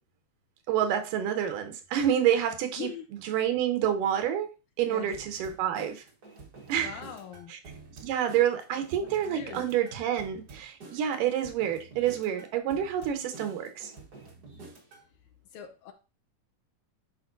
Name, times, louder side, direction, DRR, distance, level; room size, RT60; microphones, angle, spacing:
voice 1, 0.7-2.9 3.3-4.5 4.8-6.0 6.7-6.9 7.5-7.6 8.0-13.9, right 10 dB, 90° right, 7 dB, 2.6 m, -28 dB
sound 1, 5.1-15.1, right 3 dB, 70° right, 0.9 m, -49 dB
voice 2, 6.8-7.5 9.0-9.6 11.0-11.2 15.5-15.9, left 9 dB, 75° left, 6 dB, 2.2 m, -42 dB
10.5 x 4.6 x 2.6 m, 0.31 s
omnidirectional pair, 3.7 m